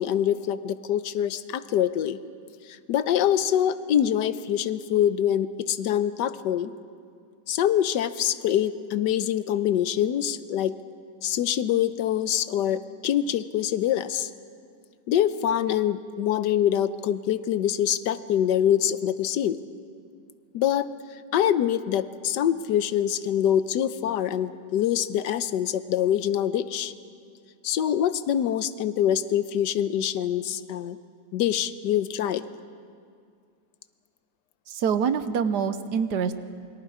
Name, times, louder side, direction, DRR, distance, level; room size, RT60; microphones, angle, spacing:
voice 1, 0.0-2.2 2.9-6.7 7.5-10.8 11.2-14.3 15.1-19.6 20.5-20.9 21.3-26.9 27.6-31.0 31.3-32.4, left 10 dB, 90° left, 13 dB, 1.4 m, -25 dB
voice 2, 34.7-36.3, right 6 dB, 75° right, 11 dB, 1.5 m, -25 dB
28.0 x 23.0 x 4.9 m, 2.2 s
omnidirectional pair, 1.8 m